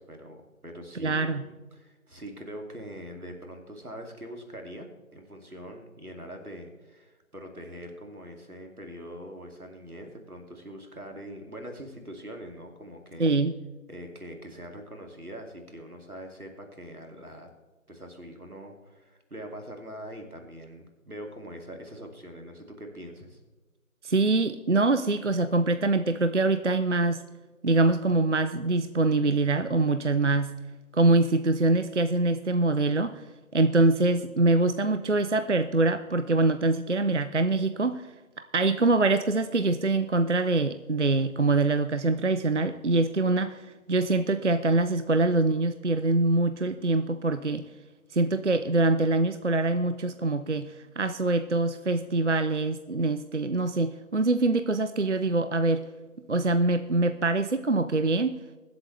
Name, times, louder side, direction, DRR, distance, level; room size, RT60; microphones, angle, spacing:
voice 1, 0.0-13.3 13.9-17.5 17.9-23.4, equal, 90° right, 3 dB, 2.6 m, -43 dB
voice 2, 0.9-1.5 13.2-13.5 24.0-27.2 27.6-30.5 30.9-33.2 33.5-47.7 48.1-55.8 56.3-58.4, right 2 dB, 55° right, 11 dB, 0.5 m, -24 dB
22.5 x 7.9 x 3.3 m, 1.2 s
figure-of-eight pair, 170°, 43 cm